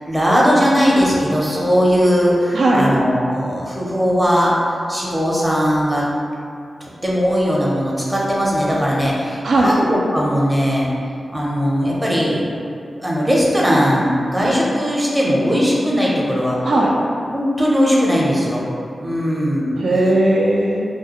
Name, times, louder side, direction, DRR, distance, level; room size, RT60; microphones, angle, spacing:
voice 1, 0.1-4.5 4.9-6.0 7.0-10.9 11.3-12.4 13.0-16.6 17.3-18.6 19.0-19.8, equal, 15° right, -5 dB, 0.6 m, -18 dB
voice 2, 2.5-2.9 9.4-9.8 16.6-16.9 19.8-20.9, right 1 dB, 85° right, -3 dB, 0.4 m, -16 dB
2.3 x 2.1 x 2.9 m, 2.4 s
cardioid pair, 60°, 0 cm